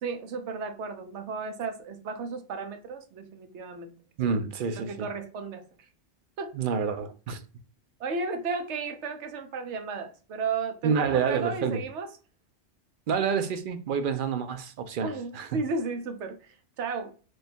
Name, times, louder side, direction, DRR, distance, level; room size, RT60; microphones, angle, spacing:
voice 1, 0.0-3.9 4.7-5.9 6.4-6.6 8.0-12.1 15.0-17.1, right 4 dB, 85° right, 1.0 m, -34 dB
voice 2, 4.2-5.1 6.5-7.4 10.8-11.8 13.1-15.5, right 6 dB, 60° right, 0.6 m, -28 dB
3.3 x 2.4 x 4.1 m
omnidirectional pair, 1.1 m